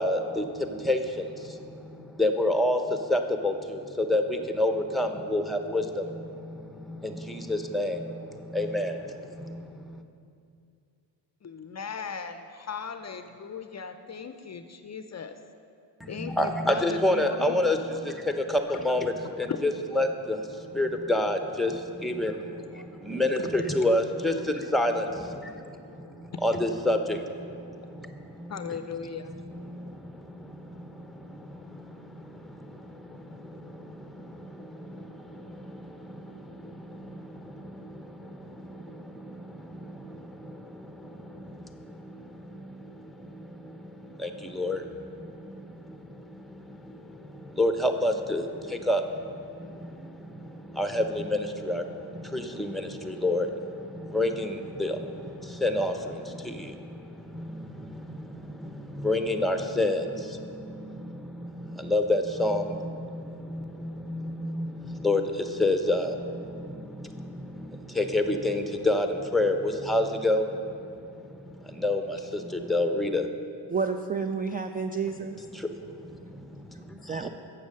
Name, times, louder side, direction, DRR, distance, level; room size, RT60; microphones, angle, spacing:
voice 1, 0.0-10.0 16.0-19.7 20.0-28.5 29.5-73.3 75.5-77.3, left 1 dB, ahead, 6 dB, 0.8 m, -30 dB
voice 2, 11.4-15.4 16.1-17.6 18.7-18.8 19.2-19.6 22.6-23.6 25.5-25.6 26.0-26.2 28.5-29.4, left 6 dB, 35° left, 8 dB, 0.6 m, -38 dB
voice 3, 73.7-75.4 77.1-77.3, right 5 dB, 20° right, 7 dB, 0.4 m, -30 dB
7.1 x 6.6 x 6.4 m, 2.4 s
supercardioid pair, 50°, 48 cm